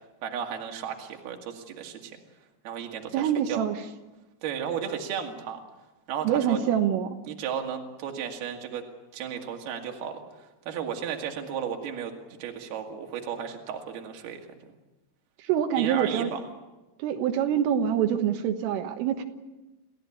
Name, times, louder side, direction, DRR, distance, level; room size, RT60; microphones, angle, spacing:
voice 1, 0.2-2.2 2.6-3.6 4.4-5.6 6.1-6.6 7.3-8.8 9.1-10.2 10.7-12.1 12.4-14.5 15.8-16.4, right 8 dB, 60° right, 3 dB, 3.8 m, -34 dB
voice 2, 3.1-3.8 6.3-7.2 15.4-16.3 17.0-19.2, right 9 dB, 85° right, 5 dB, 4.0 m, -25 dB
29.0 x 16.0 x 8.6 m, 1.1 s
omnidirectional pair, 5.7 m